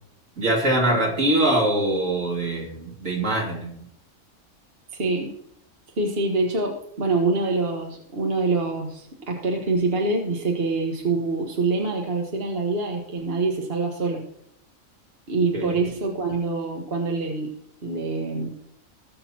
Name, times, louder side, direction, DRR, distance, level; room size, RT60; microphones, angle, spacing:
voice 1, 0.4-3.7 15.5-15.7, right 1 dB, 65° right, -1 dB, 2.9 m, -23 dB
voice 2, 4.9-5.3 6.0-14.2 15.3-17.5 17.8-18.5, right 3 dB, 45° right, 0 dB, 1.7 m, -25 dB
20.0 x 6.7 x 2.9 m, 0.72 s
omnidirectional pair, 1.4 m